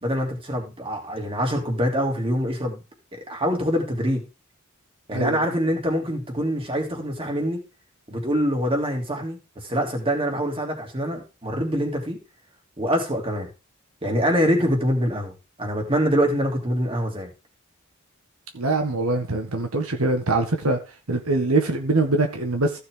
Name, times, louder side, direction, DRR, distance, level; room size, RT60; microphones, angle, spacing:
voice 1, 0.0-2.8 3.1-4.2 5.1-7.6 8.1-12.2 12.8-13.5 14.0-15.3 15.6-17.3, equal, 25° right, 3.1 m, -24 dB
voice 2, 18.5-20.8 21.1-22.8, right 2 dB, 75° right, 1.7 m, -23 dB
14.5 x 6.6 x 3.9 m
head